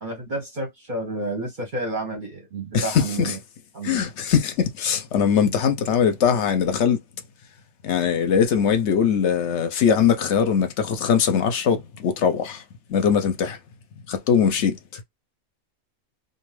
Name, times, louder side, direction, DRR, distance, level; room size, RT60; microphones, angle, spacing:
voice 1, 0.0-3.4 3.7-4.1, right 2 dB, 45° right, 0.7 m, -30 dB
voice 2, 2.7-3.3 3.8-7.0 7.8-12.6 12.9-13.6 14.1-14.8, left 7 dB, 65° left, 0.8 m, -21 dB
2.6 x 2.3 x 3.1 m
omnidirectional pair, 1.5 m